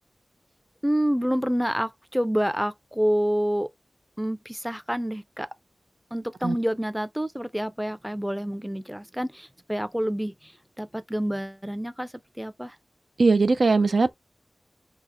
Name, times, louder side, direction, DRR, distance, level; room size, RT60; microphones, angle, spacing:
voice 1, 0.8-3.7 4.2-5.5 6.1-10.5 10.8-12.1 12.4-12.8, equal, 5° right, 0.5 m, -28 dB
voice 2, 13.2-14.1, right 3 dB, 70° right, 0.4 m, -20 dB
2.8 x 2.0 x 2.2 m
cardioid pair, 50°, 0 cm